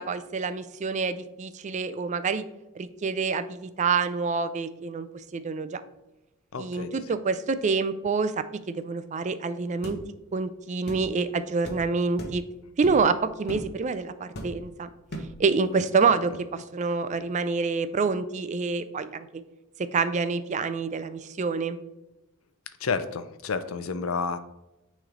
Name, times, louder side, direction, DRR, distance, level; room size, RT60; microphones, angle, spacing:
voice 1, 0.0-2.4 2.8-5.1 5.3-5.8 6.6-10.0 10.3-12.4 12.8-14.9 15.4-19.4 19.9-21.8, right 4 dB, 35° right, 12 dB, 0.4 m, -27 dB
voice 2, 6.5-6.9 22.8-24.4, left 5 dB, 85° left, 11 dB, 0.6 m, -30 dB
sound 1, 9.8-10.0 10.9-11.1 11.6-11.8 12.2-12.4 12.8-13.1 13.5-13.7 14.3-14.7 15.1-15.4, equal, 50° left, 0.9 m, -37 dB
9.1 x 3.2 x 3.8 m, 0.95 s
head